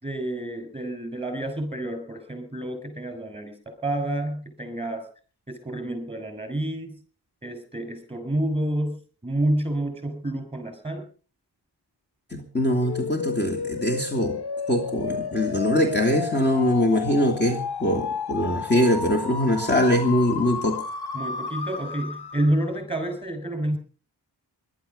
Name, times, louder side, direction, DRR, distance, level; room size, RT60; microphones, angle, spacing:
voice 1, 0.0-5.1 5.5-6.9 7.4-11.0 21.1-23.8, right 1 dB, 15° right, 6 dB, 6.6 m, -29 dB
voice 2, 12.3-14.4 14.7-20.8, left 1 dB, 25° left, 2 dB, 2.9 m, -22 dB
sound 1, 12.8-22.7, left 5 dB, 65° left, 1.2 m, -32 dB
20.5 x 12.0 x 5.5 m, 0.41 s
wide cardioid pair, 75°, 43 cm